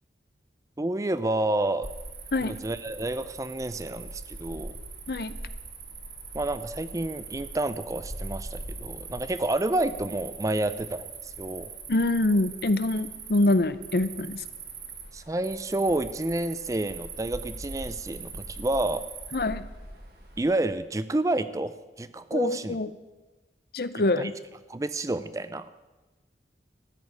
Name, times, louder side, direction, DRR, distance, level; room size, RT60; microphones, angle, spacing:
voice 1, 0.8-1.9 2.4-4.8 6.3-11.7 15.1-19.0 20.4-22.8 24.2-24.3 24.7-25.7, right 2 dB, 20° right, 13 dB, 0.4 m, -29 dB
Cricket, 1.8-20.7, right 4 dB, 55° right, 2.2 m, -41 dB
voice 2, 11.9-14.4 19.3-19.6 22.3-22.9 23.7-24.3, left 2 dB, 60° left, 14 dB, 0.6 m, -25 dB
13.5 x 6.5 x 9.4 m, 1.2 s
head